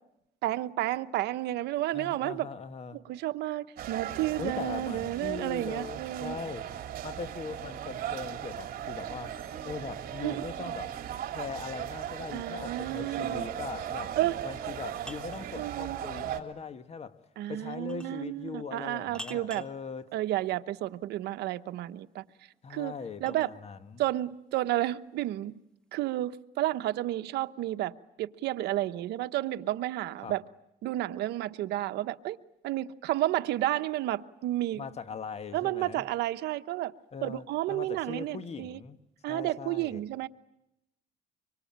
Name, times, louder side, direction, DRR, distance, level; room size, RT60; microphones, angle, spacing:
voice 1, 0.4-2.5 2.9-6.4 10.2-10.7 12.3-13.5 14.2-14.4 15.5-16.0 17.4-19.6 20.1-22.2 22.7-22.9 23.2-23.5 24.0-25.5 25.9-27.9 28.2-30.4 30.8-32.4 32.6-34.8 35.5-36.9 37.2-38.8 39.2-40.3, right 15 dB, 80° right, 1.0 m, -31 dB
voice 2, 1.9-3.0 4.4-6.7 7.0-11.0 11.3-14.2 14.4-17.2 17.5-20.1 22.6-24.0 30.2-30.3 34.7-36.1 37.1-39.0 39.3-40.0, left 5 dB, 40° left, 1.5 m, -40 dB
sound 1, 3.8-16.4, right 10 dB, 60° right, 3.0 m, -38 dB
sound 2, 14.9-15.5 17.9-18.2 19.1-19.8 22.0-23.6, equal, 5° left, 1.5 m, -46 dB
25.0 x 24.5 x 8.8 m
cardioid pair, 110°, 17 cm